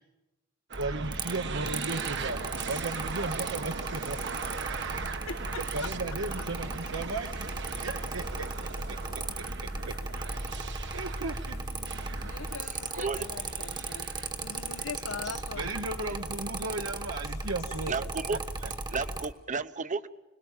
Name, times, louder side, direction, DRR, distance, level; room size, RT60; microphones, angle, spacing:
Mechanical fan, 0.7-19.3, right 3 dB, 20° right, 1.2 m, -37 dB
sound 1, 0.7-15.6, right 5 dB, 60° right, 1.2 m, -40 dB
voice 1, 0.8-2.4 2.7-4.2 4.7-4.8 5.5-7.5 7.8-8.5 8.9-9.5 9.9-10.0 10.6-11.6 15.0-15.1 15.5-18.4 18.9-19.0, right 2 dB, 75° right, 1.1 m, -36 dB
sound 2, 2.0-19.3, left 1 dB, 55° left, 1.7 m, -47 dB
voice 2, 5.3-5.9 12.2-14.1 14.4-16.4, left 4 dB, 75° left, 1.0 m, -41 dB
voice 3, 12.6-13.5 15.3-15.4 17.9-20.1, right 4 dB, 35° right, 0.9 m, -34 dB
26.5 x 20.5 x 7.3 m
head